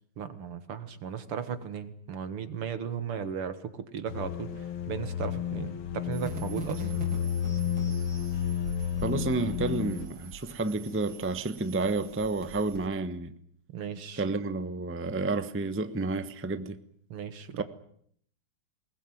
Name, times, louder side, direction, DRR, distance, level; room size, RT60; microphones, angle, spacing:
voice 1, 0.2-6.9 13.7-14.3 17.1-17.6, right 7 dB, 80° right, 2.6 m, -36 dB
sound 1, 4.1-10.1, left 9 dB, 65° left, 2.3 m, -32 dB
sound 2, 6.1-12.9, right 2 dB, 65° right, 4.3 m, -43 dB
voice 2, 9.0-13.3 14.2-16.8, right 3 dB, 10° right, 0.6 m, -30 dB
21.5 x 20.0 x 9.3 m
omnidirectional pair, 2.4 m